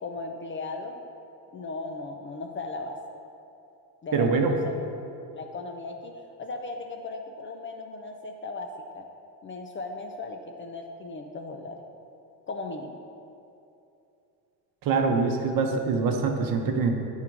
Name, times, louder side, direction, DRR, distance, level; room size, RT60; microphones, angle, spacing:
voice 1, 0.0-1.1 1.5-3.0 4.0-4.7 5.3-6.1 6.4-8.7 8.9-9.1 9.4-11.8 12.5-13.0, left 3 dB, 30° left, 3 dB, 0.4 m, -37 dB
voice 2, 4.1-4.5 14.8-16.9, right 4 dB, 50° right, 3 dB, 0.8 m, -24 dB
8.4 x 3.7 x 4.6 m, 2.7 s
cardioid pair, 120°, 42 cm